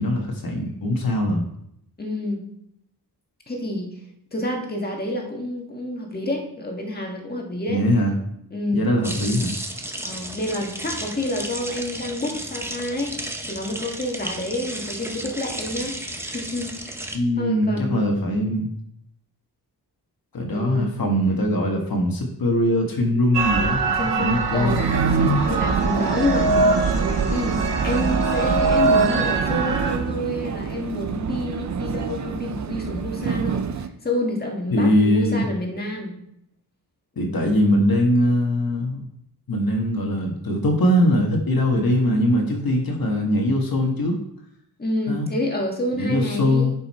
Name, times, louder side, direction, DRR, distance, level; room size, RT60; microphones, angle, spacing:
voice 1, 0.0-1.4 7.7-8.2 8.7-9.5 17.1-18.7 20.3-23.8 24.2-24.8 34.7-35.4 37.2-39.0 39.5-44.2 45.1-45.2 46.0-46.7, left 1 dB, 60° left, 1 dB, 1.6 m, -21 dB
voice 2, 2.0-2.5 3.5-3.9 4.3-7.8 8.5-8.9 10.0-13.1 13.5-16.0 16.2-16.7 17.4-18.2 20.5-20.9 24.0-26.5 27.0-36.1 44.8-46.7, left 1 dB, 25° left, 1 dB, 1.6 m, -28 dB
sound 1, 9.0-17.2, right 1 dB, 5° right, 0.7 m, -33 dB
sound 2, 23.3-30.0, right 3 dB, 85° right, 1.2 m, -22 dB
Vehicle, 24.6-33.9, right 7 dB, 45° right, 0.5 m, -27 dB
10.5 x 5.6 x 4.3 m, 0.74 s
wide cardioid pair, 170°, 41 cm